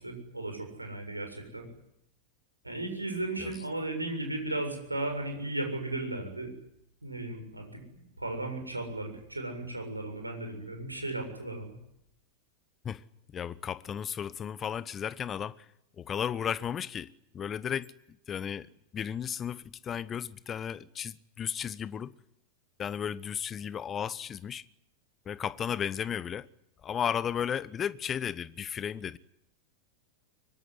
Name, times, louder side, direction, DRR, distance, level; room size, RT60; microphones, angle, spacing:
voice 1, 0.0-1.7 2.6-6.5 7.0-7.8 8.2-11.7, right 2 dB, 85° right, 7.3 m, -35 dB
voice 2, 12.8-15.7 15.9-22.1 22.8-24.6 25.2-26.5 26.8-29.2, left 8 dB, 25° left, 1.0 m, -34 dB
24.5 x 23.0 x 9.8 m
figure-of-eight pair, 90°, 0 cm